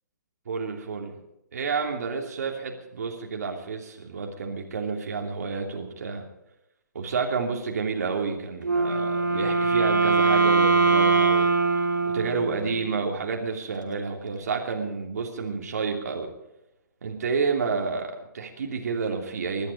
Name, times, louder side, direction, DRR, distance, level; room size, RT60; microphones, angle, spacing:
voice 1, 0.5-1.1 1.5-6.3 6.9-11.5 12.1-16.3 17.0-19.7, right 5 dB, 55° right, 2 dB, 2.9 m, -30 dB
Wind instrument woodwind instrument, 8.6-12.9, right 3 dB, 70° right, 2.7 m, -22 dB
22.0 x 12.0 x 5.1 m, 0.88 s
figure-of-eight pair, 125°, 10 cm